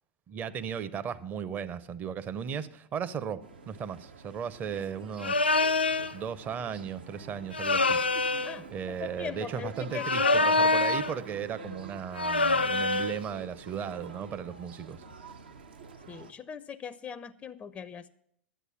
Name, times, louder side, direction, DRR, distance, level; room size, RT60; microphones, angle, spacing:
voice 1, 0.3-5.5 6.1-8.0 8.7-15.0, right 7 dB, 30° right, 0.6 m, -36 dB
sound 1, 3.4-16.3, right 4 dB, 75° right, 0.7 m, -47 dB
sound 2, 5.2-6.1 7.5-8.6 9.9-11.2 12.2-13.2, left 3 dB, 85° left, 0.3 m, -25 dB
voice 2, 8.4-10.6 16.1-18.1, left 7 dB, 20° left, 0.4 m, -40 dB
11.0 x 8.1 x 5.7 m
figure-of-eight pair, 90°, 6 cm